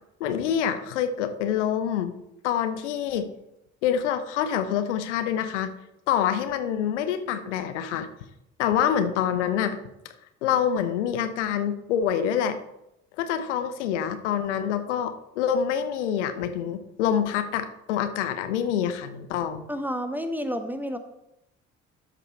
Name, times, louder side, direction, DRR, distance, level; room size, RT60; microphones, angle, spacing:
voice 1, 0.2-2.1 2.4-3.3 3.8-5.7 6.1-8.1 8.6-9.8 10.4-12.6 13.2-19.6, left 9 dB, 70° left, 9 dB, 0.8 m, -26 dB
voice 2, 19.7-21.0, equal, 5° right, 9 dB, 0.9 m, -30 dB
12.5 x 5.4 x 4.2 m, 0.84 s
figure-of-eight pair, 50°, 37 cm